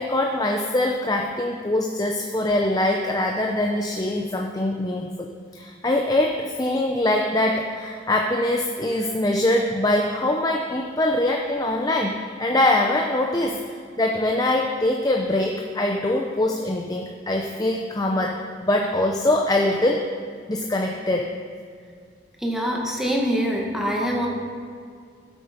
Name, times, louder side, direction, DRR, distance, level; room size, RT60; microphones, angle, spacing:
voice 1, 0.0-13.7 14.0-20.0 20.5-21.3, left 1 dB, 20° left, 1 dB, 0.6 m, -23 dB
voice 2, 22.4-24.3, equal, ahead, -2 dB, 1.6 m, -24 dB
12.5 x 8.3 x 5.1 m, 2.2 s
head